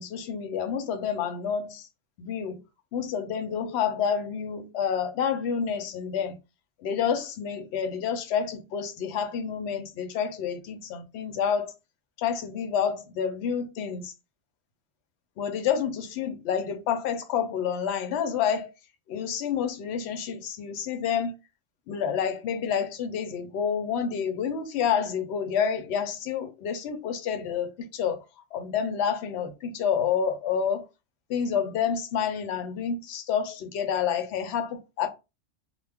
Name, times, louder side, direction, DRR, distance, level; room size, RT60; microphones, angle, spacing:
voice 1, 0.0-1.9 2.2-2.6 2.9-6.4 6.8-11.7 12.2-14.1 15.4-18.7 19.1-21.3 21.9-28.2 28.5-30.8 31.3-35.1, left 7 dB, 65° left, 0.8 m, -29 dB
2.2 x 2.1 x 3.3 m
omnidirectional pair, 1.3 m